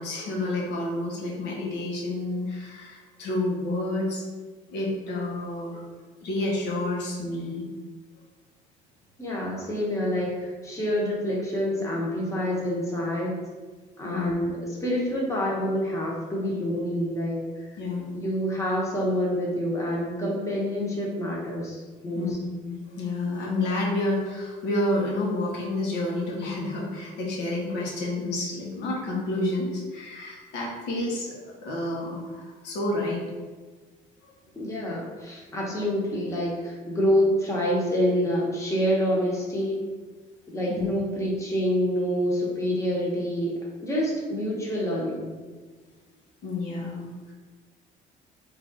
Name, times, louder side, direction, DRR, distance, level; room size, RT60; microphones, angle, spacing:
voice 1, 0.0-4.2 4.7-5.8 6.2-7.7 14.0-14.3 17.8-18.1 22.1-22.3 22.6-31.3 31.6-33.2 40.7-40.9 46.4-47.3, left 2 dB, 85° left, -3 dB, 0.9 m, -29 dB
voice 2, 9.2-13.3 14.0-17.7 18.1-22.3 34.6-39.7 40.5-45.3, equal, 15° left, -4 dB, 1.0 m, -27 dB
3.3 x 2.5 x 3.9 m, 1.4 s
cardioid pair, 110°, 17 cm